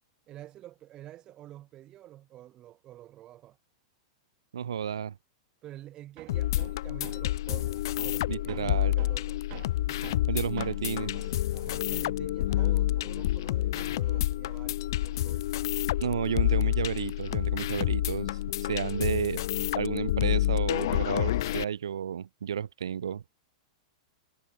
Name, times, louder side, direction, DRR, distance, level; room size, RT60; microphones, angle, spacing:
voice 1, 0.3-3.6 5.6-9.4 11.5-15.5, right 13 dB, 30° right, 1.7 m, -48 dB
voice 2, 4.5-5.1 8.3-8.9 10.3-11.1 16.0-19.5 19.8-23.2, right 8 dB, 65° right, 0.4 m, -32 dB
Hammer, 6.2-13.5 13.8-15.5, right 25 dB, 45° right, 2.7 m, -50 dB
sound 1, 6.3-21.6, left 14 dB, 55° left, 0.4 m, -29 dB
figure-of-eight pair, 95°, 3 cm